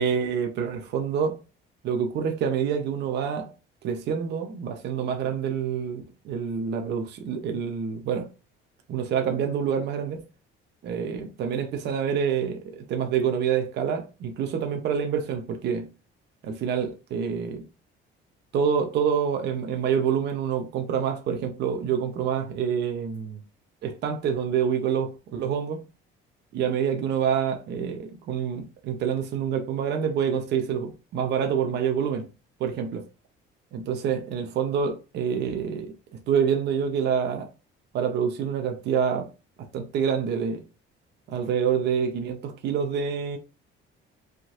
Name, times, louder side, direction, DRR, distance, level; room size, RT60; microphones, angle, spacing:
voice 1, 0.0-1.4 1.8-3.5 3.8-8.3 8.9-10.2 10.8-15.9 16.4-17.6 18.5-23.4 23.8-25.8 26.5-32.3 32.6-33.0 33.7-35.9 36.3-37.5 37.9-39.3 39.7-40.6 41.3-43.4, right 7 dB, 55° right, 0.8 m, -27 dB
5.2 x 3.8 x 2.5 m
cardioid pair, 165°, 21 cm